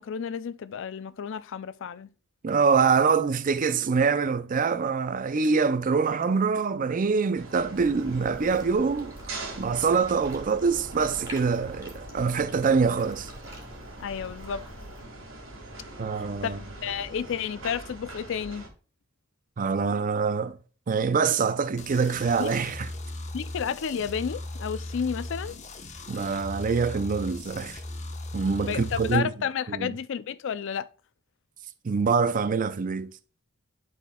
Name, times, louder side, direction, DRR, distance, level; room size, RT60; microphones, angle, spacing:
voice 1, 0.0-2.1 14.0-14.6 16.1-18.6 22.4-22.5 23.3-25.6 28.6-30.9, left 7 dB, 65° left, 0.4 m, -31 dB
voice 2, 2.4-9.1 9.6-13.3 16.0-16.6 19.6-20.6 20.9-22.9 26.1-27.8 28.3-29.3 29.7-29.9 31.8-33.1, right 5 dB, 40° right, 0.4 m, -25 dB
sound 1, 7.3-18.7, right 2 dB, 75° right, 2.1 m, -43 dB
sound 2, 7.7-15.0, equal, 15° right, 2.6 m, -46 dB
sound 3, 21.8-29.2, left 2 dB, 35° left, 1.1 m, -38 dB
11.5 x 4.3 x 2.3 m
head